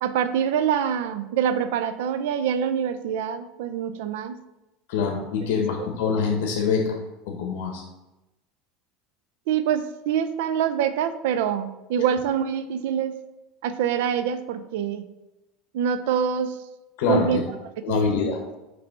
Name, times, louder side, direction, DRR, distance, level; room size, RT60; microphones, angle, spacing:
voice 1, 0.0-4.4 9.5-13.2 13.6-15.0 15.7-16.6 17.1-17.4 17.9-18.2, right 8 dB, 75° right, 12 dB, 0.4 m, -25 dB
voice 2, 4.9-7.0 7.3-7.8 17.0-17.4 17.8-18.4, left 5 dB, 70° left, 2 dB, 1.0 m, -24 dB
5.9 x 3.3 x 5.1 m, 0.97 s
cardioid pair, 170°, 0 cm